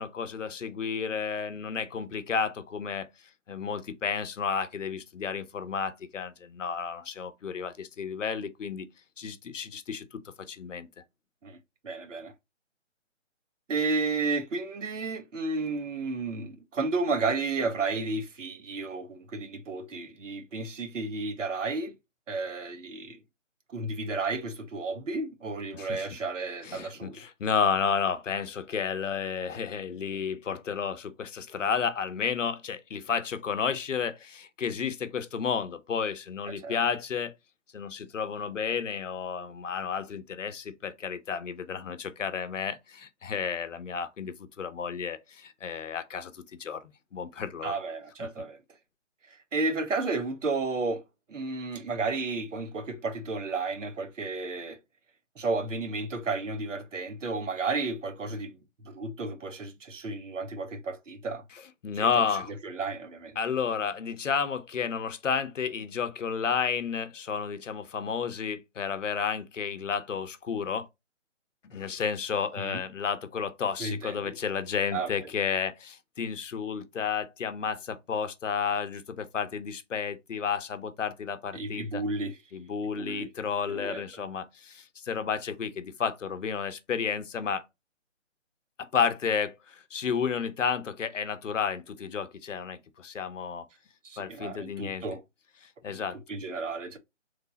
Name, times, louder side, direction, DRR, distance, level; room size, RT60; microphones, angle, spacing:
voice 1, 0.0-3.1 3.5-8.9 9.2-10.2 10.5-10.9 25.7-26.1 26.6-37.3 37.7-47.8 48.2-48.4 61.8-62.5 63.4-70.9 71.6-82.0 82.5-87.7 88.8-93.7 94.2-95.0 95.6-96.2, left 6 dB, 75° left, 0.7 m, -32 dB
voice 2, 11.8-12.3 13.7-22.0 22.3-23.2 23.7-27.2 36.6-36.8 47.6-48.6 49.2-51.0 51.3-54.8 55.4-58.6 58.8-61.4 61.9-62.4 62.6-63.4 72.6-72.8 73.8-74.3 74.9-75.1 81.5-82.4 83.0-83.3 83.7-84.0 94.0-95.2 95.9-96.0 96.3-97.0, right 3 dB, 75° right, 0.9 m, -32 dB
3.2 x 2.0 x 3.8 m
hypercardioid pair, 165°, 37 cm